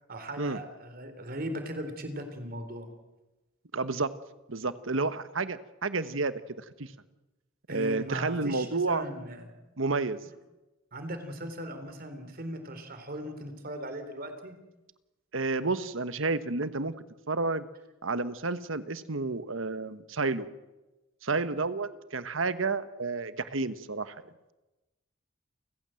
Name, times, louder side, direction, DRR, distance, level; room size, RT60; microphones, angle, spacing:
voice 1, 0.1-2.9 7.7-9.5 10.9-14.5, right 1 dB, 50° right, 8 dB, 3.7 m, -38 dB
voice 2, 3.7-4.1 4.5-6.9 7.7-9.0 9.8-10.2 15.3-16.9 17.3-17.7 18.0-20.5 21.2-24.2, right 3 dB, 75° right, 13 dB, 1.3 m, -30 dB
30.0 x 15.0 x 7.7 m, 1.0 s
head